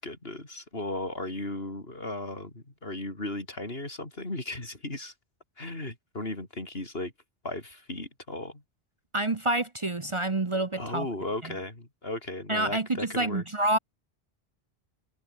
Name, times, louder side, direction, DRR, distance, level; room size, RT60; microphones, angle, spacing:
voice 1, 0.0-5.1 5.6-7.1 7.4-8.6 10.7-13.4, left 2 dB, 70° left, 5.1 m, -36 dB
voice 2, 9.1-11.1 11.4-11.5 12.5-13.8, right 2 dB, 30° right, 1.0 m, -28 dB
omnidirectional pair, 1.1 m